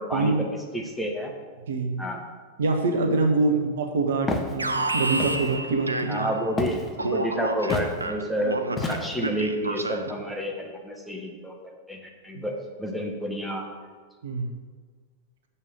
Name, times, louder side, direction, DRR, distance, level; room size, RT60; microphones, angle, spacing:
voice 1, 0.0-1.3 2.0-2.2 3.5-3.6 6.1-13.7, equal, ahead, 0 dB, 1.5 m, -30 dB
voice 2, 1.7-2.0 2.6-6.3 6.7-6.8 12.3-12.4 14.2-14.6, right 3 dB, 60° right, 4 dB, 1.0 m, -25 dB
Walk footsteps, 4.3-4.5 5.2-5.6 6.6-6.9 7.7-7.9 8.8-9.3, left 3 dB, 20° left, 1.1 m, -29 dB
Alarm, 4.6-6.6 7.0-10.2, right 2 dB, 80° right, 0.5 m, -30 dB
7.2 x 5.6 x 6.7 m, 1.5 s
figure-of-eight pair, 90°, 0 cm